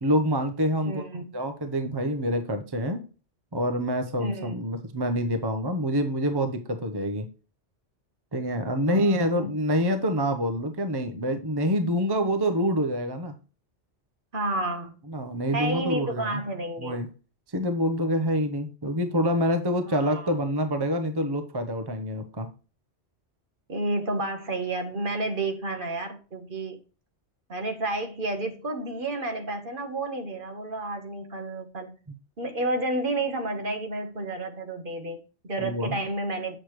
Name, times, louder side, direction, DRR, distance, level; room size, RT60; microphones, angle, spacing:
voice 1, 0.0-1.0 1.3-3.0 3.5-7.3 8.3-13.3 15.1-16.4 16.8-17.1 17.5-22.5 35.6-36.0, equal, 25° right, 7 dB, 0.8 m, -26 dB
voice 2, 0.8-1.3 4.2-4.6 8.9-9.5 14.3-14.9 15.5-17.0 19.9-20.3 23.7-26.8 27.5-31.9 32.4-36.6, right 2 dB, 50° right, 5 dB, 1.3 m, -31 dB
8.2 x 6.6 x 3.1 m, 0.34 s
omnidirectional pair, 1.2 m